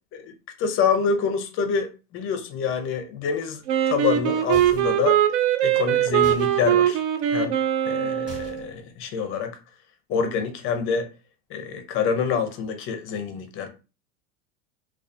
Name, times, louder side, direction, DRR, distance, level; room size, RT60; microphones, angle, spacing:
voice 1, 0.6-5.2 5.6-7.0 7.3-7.6 7.8-9.6 10.1-11.1 11.5-13.7, left 6 dB, 35° left, 0.5 m, -26 dB
Wind instrument woodwind instrument, 3.7-8.7, right 11 dB, 65° right, 0.5 m, -22 dB
sound 1, 4.5-5.0 6.2-6.5 8.3-8.8, left 3 dB, 5° right, 1.0 m, -41 dB
2.3 x 2.3 x 2.4 m
supercardioid pair, 125°, 36 cm